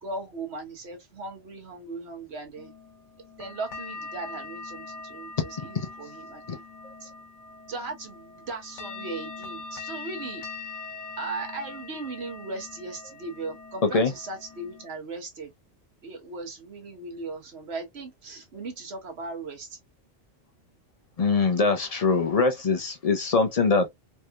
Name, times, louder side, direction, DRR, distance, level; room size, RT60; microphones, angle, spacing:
voice 1, 0.0-2.7 3.4-6.4 7.0-7.1 7.7-10.4 11.2-15.5 16.0-19.8, right 3 dB, 65° right, 1.3 m, -37 dB
sound 1, 2.6-14.9, left 4 dB, 80° left, 1.2 m, -42 dB
voice 2, 13.8-14.1 21.2-23.9, left 4 dB, 45° left, 0.5 m, -23 dB
3.3 x 2.8 x 2.2 m
omnidirectional pair, 1.2 m